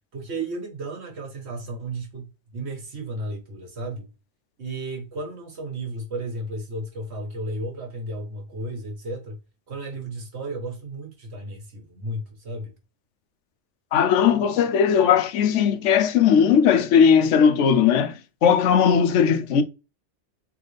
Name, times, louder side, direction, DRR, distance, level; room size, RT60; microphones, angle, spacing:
voice 1, 0.1-4.1 4.6-9.4 9.7-12.7, right 2 dB, 65° right, 1.6 m, -33 dB
voice 2, 13.9-18.1 18.4-19.6, left 7 dB, 85° left, 0.9 m, -18 dB
4.0 x 3.2 x 3.2 m
omnidirectional pair, 1.2 m